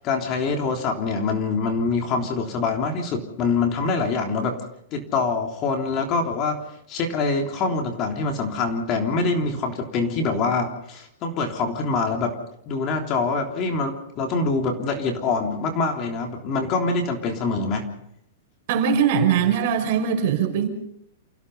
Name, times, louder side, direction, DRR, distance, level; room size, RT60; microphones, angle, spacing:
voice 1, 0.0-4.6 4.9-6.6 6.9-12.4 12.7-17.9, left 4 dB, 30° left, 3 dB, 3.4 m, -25 dB
voice 2, 18.7-20.7, right 7 dB, 50° right, 5 dB, 5.4 m, -21 dB
29.0 x 16.5 x 5.6 m, 0.73 s
hypercardioid pair, 155°, 0 cm